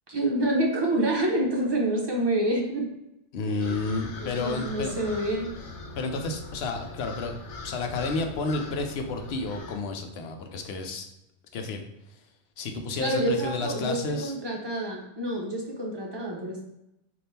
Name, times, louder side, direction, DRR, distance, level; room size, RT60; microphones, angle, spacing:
voice 1, 0.1-2.9 3.4-3.8 4.2-5.5 13.0-16.6, right 1 dB, 25° right, -2 dB, 0.7 m, -27 dB
voice 2, 3.3-5.1 6.0-7.3 7.6-11.1 11.5-11.8 12.6-14.3, left 3 dB, 70° left, 5 dB, 0.8 m, -31 dB
sound 1, 3.6-9.8, left 3 dB, 90° left, 1.0 m, -41 dB
3.4 x 2.6 x 4.1 m, 0.85 s
omnidirectional pair, 1.2 m